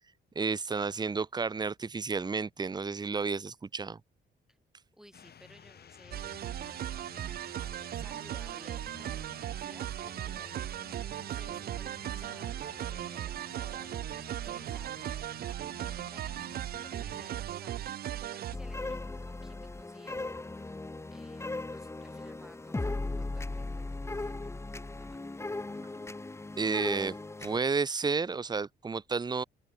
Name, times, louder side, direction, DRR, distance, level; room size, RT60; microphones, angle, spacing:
voice 1, 0.4-4.0 26.6-29.4, right 4 dB, 20° right, 0.7 m, -31 dB
voice 2, 4.9-7.0 7.9-10.7 11.3-14.0 14.4-15.4 16.1-20.8 21.1-25.3, equal, 5° right, 4.6 m, -57 dB
sound 1, 5.1-17.4, left 8 dB, 55° left, 4.2 m, -53 dB
sound 2, 6.1-18.6, right 11 dB, 50° right, 0.4 m, -37 dB
sound 3, 18.5-27.6, left 2 dB, 15° left, 1.0 m, -38 dB
open air
cardioid pair, 90°, 20 cm